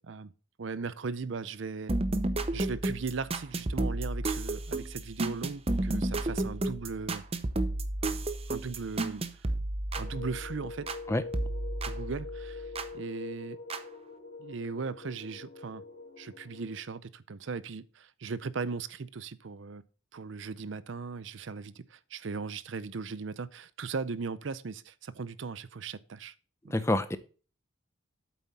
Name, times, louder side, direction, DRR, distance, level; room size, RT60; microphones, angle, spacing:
voice 1, 0.6-1.9 2.5-7.2 8.1-8.2 8.5-9.3 10.0-11.0 11.9-13.6 14.4-15.8 16.2-19.8 20.1-26.3 26.6-26.8, right 4 dB, 65° right, 0.5 m, -38 dB
sound 1, 1.9-11.0 11.3-12.9 13.7-13.8, right 2 dB, 30° right, 0.7 m, -32 dB
sound 2, 9.9-16.8, left 4 dB, 60° left, 3.1 m, -44 dB
voice 2, 26.7-27.2, left 1 dB, 15° left, 0.6 m, -27 dB
8.5 x 7.2 x 4.1 m
head